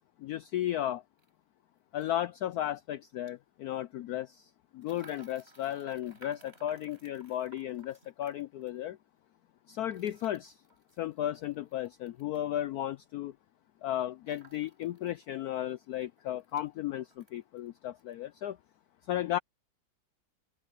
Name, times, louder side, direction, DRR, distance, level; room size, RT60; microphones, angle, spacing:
voice 1, 0.2-1.0 1.9-9.0 9.7-10.6 11.0-13.3 13.8-18.6 19.1-19.4, left 12 dB, 80° left, 0.8 m, -34 dB
sound 1, 1.2-1.3 2.0-2.1 3.1-3.3 4.8-8.8 9.9-12.5 14.2-15.3 15.6-15.7 16.0-16.7 17.0-17.7 18.0-18.2, right 3 dB, 30° right, 5.6 m, -59 dB
omnidirectional pair, 2.1 m